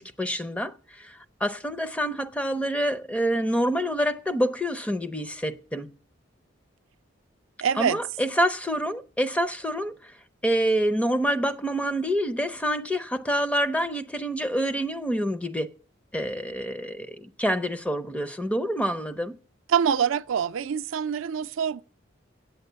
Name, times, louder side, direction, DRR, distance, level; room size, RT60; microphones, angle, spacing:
voice 1, 0.0-5.9 7.8-10.1 10.4-15.7 16.1-19.4, equal, 5° left, 0.5 m, -27 dB
voice 2, 7.6-8.0 19.7-21.8, right 7 dB, 80° right, 0.4 m, -25 dB
8.6 x 8.2 x 6.7 m
head